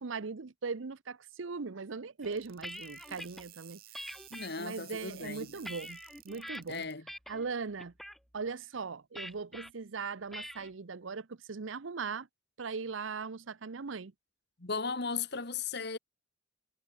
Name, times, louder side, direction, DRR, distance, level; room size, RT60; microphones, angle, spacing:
voice 1, 0.0-3.8 4.6-6.0 6.2-6.9 7.3-7.9 8.3-12.3 12.6-14.1, right 4 dB, 75° right, 0.7 m, -39 dB
sound 1, 2.2-3.4 3.9-4.5 5.1-6.6 7.1-7.5 7.8-8.2 9.2-9.7 10.3-10.7, equal, ahead, 1.0 m, -45 dB
sound 2, 2.3-6.9, right 14 dB, 50° right, 5.0 m, -54 dB
voice 2, 4.3-5.6 6.7-7.0 14.6-16.0, left 5 dB, 55° left, 1.7 m, -36 dB
head